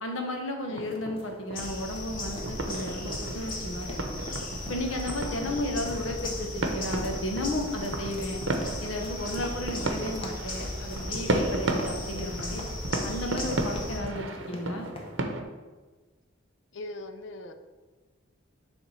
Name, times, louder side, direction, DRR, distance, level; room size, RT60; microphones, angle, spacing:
voice 1, 0.0-4.2 4.7-8.4 8.8-12.6 13.0-14.9, left 1 dB, 80° left, 3 dB, 1.0 m, -33 dB
sound 1, 0.7-15.4, right 2 dB, 65° right, 0.7 m, -35 dB
sound 2, 0.8-15.1, left 1 dB, 30° left, 0.8 m, -45 dB
sound 3, 1.5-14.0, left 1 dB, 45° left, 1.3 m, -37 dB
voice 2, 5.4-5.9 16.7-17.5, left 2 dB, 65° left, 8 dB, 0.6 m, -41 dB
7.2 x 3.5 x 5.6 m, 1.3 s
head